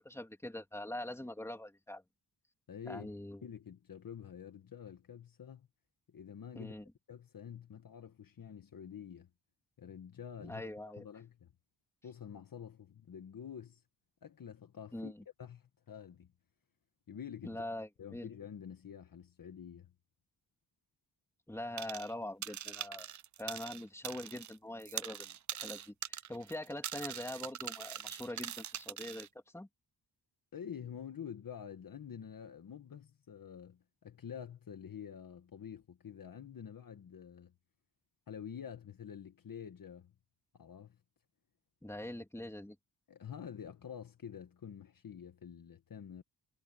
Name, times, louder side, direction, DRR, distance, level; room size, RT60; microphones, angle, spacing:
voice 1, 0.0-2.0 2.9-3.4 6.5-6.8 10.4-11.0 14.9-15.2 17.4-18.3 21.5-23.1 23.4-25.3 25.6-29.3 29.5-29.7 41.8-42.7, left 1 dB, 5° left, 3.0 m, -43 dB
voice 2, 2.7-3.1 3.4-5.7 6.1-6.8 7.1-9.3 9.8-11.5 12.0-13.8 14.2-15.1 15.4-16.3 17.1-17.7 18.0-19.9 30.5-37.5 38.3-40.1 40.5-41.0 43.1-46.2, left 8 dB, 55° left, 1.6 m, -48 dB
sound 1, 21.8-22.1 22.4-24.5 24.8-29.3, right 10 dB, 45° right, 0.5 m, -43 dB
wide cardioid pair, 135°, 41 cm